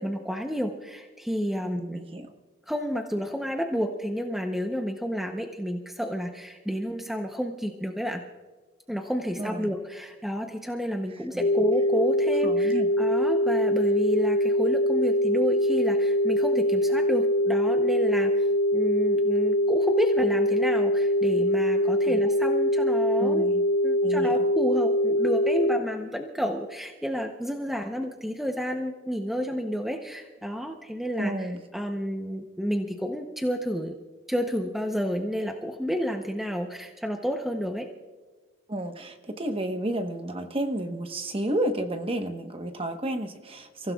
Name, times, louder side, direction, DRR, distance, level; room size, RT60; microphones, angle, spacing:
voice 1, 0.0-2.0 2.7-8.2 8.9-18.5 18.7-23.4 23.8-31.5 31.7-34.0 34.3-37.9, equal, ahead, 3 dB, 0.7 m, -30 dB
voice 2, 1.6-2.3 9.4-9.7 11.3-11.5 12.4-12.9 22.1-22.2 23.2-23.6 24.0-24.4 31.2-31.6 38.7-43.9, right 1 dB, 30° right, 6 dB, 1.0 m, -31 dB
sound 1, 11.4-25.8, equal, 45° left, 0.4 m, -23 dB
29.5 x 16.0 x 2.3 m, 1.4 s
head